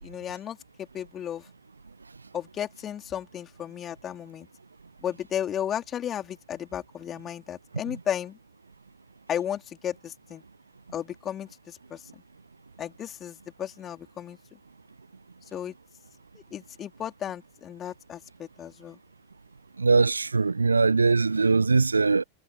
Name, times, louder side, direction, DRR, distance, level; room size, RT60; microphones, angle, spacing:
voice 1, 0.0-1.5 2.3-4.5 5.0-8.4 9.3-10.4 10.9-12.0 12.8-14.4 15.5-15.7 16.5-19.0, left 10 dB, 25° left, 4.0 m, -34 dB
voice 2, 19.8-22.2, right 4 dB, 80° right, 0.8 m, -21 dB
figure-of-eight pair, 90°, 0 cm